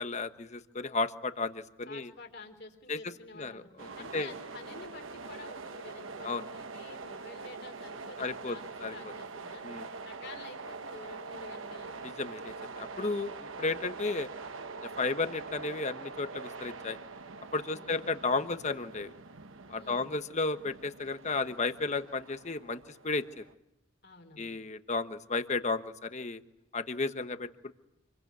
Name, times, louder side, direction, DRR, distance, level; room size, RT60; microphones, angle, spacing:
voice 1, 0.0-2.1 2.9-3.0 3.3-4.3 6.2-6.4 8.2-8.6 8.8-8.9 9.6-9.9 12.0-14.3 14.8-17.0 17.5-19.1 19.7-23.4 24.4-26.4 26.7-27.5, left 3 dB, 35° left, 10 dB, 1.2 m, -33 dB
voice 2, 1.9-3.7 4.0-9.7 10.0-12.0 17.7-18.0 19.7-20.1 24.0-24.6, left 3 dB, 55° left, 5 dB, 3.9 m, -49 dB
sound 1, 3.8-23.5, right 4 dB, 75° right, 1.2 m, -44 dB
27.5 x 22.5 x 9.5 m, 0.87 s
head